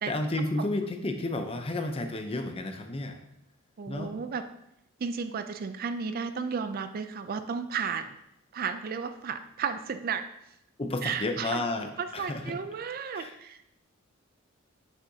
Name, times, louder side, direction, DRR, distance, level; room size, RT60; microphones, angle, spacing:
voice 1, 0.1-3.2 3.9-4.1 10.8-12.6 13.1-13.3, left 2 dB, 25° left, 5 dB, 0.7 m, -32 dB
voice 2, 3.8-4.4 5.0-8.2 8.5-10.2 11.0-11.6 12.0-13.7, right 6 dB, 45° right, 10 dB, 0.4 m, -33 dB
8.2 x 6.3 x 2.8 m, 0.80 s
head